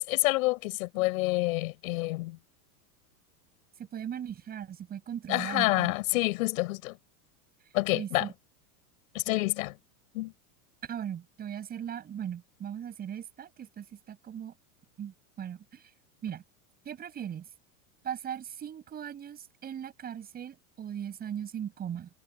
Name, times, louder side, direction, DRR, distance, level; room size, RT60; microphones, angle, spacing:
voice 1, 0.0-2.4 5.3-7.0 7.7-8.3 9.1-9.7 10.1-10.3, left 21 dB, 60° left, 6.4 m, -28 dB
voice 2, 3.8-5.9 7.9-8.3 10.8-14.5 15.0-15.8 16.2-16.4 16.8-17.4 18.0-22.1, right 9 dB, 20° right, 6.7 m, -38 dB
supercardioid pair, 175°, 46 cm